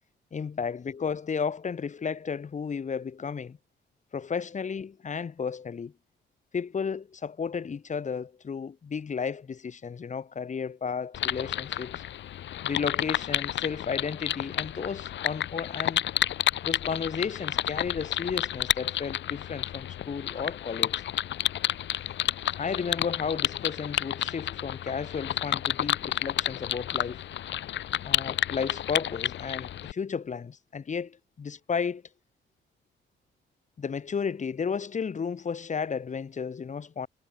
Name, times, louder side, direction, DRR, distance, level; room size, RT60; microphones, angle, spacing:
voice 1, 0.3-3.6 4.1-5.9 6.5-12.0 12.6-16.1 16.6-21.0 22.6-27.2 28.0-32.0 33.8-37.1, left 6 dB, 35° left, 1.9 m, -33 dB
sound 1, 11.1-29.9, left 11 dB, 65° left, 1.2 m, -31 dB
cardioid pair, 90°, 20 cm